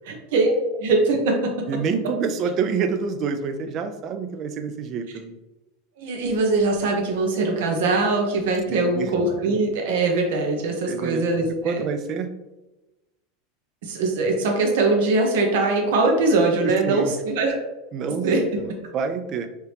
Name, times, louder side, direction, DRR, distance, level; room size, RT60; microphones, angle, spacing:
voice 1, 0.1-0.5 0.8-1.4 6.0-11.8 13.8-17.6 18.0-18.4, right 3 dB, 65° right, 1 dB, 1.0 m, -22 dB
voice 2, 1.7-5.4 8.7-9.1 10.9-11.3 11.6-12.3 16.6-17.1 17.9-18.3 18.6-19.5, right 5 dB, 25° right, 8 dB, 0.3 m, -27 dB
4.7 x 2.8 x 3.3 m, 1.0 s
supercardioid pair, 180°, 0 cm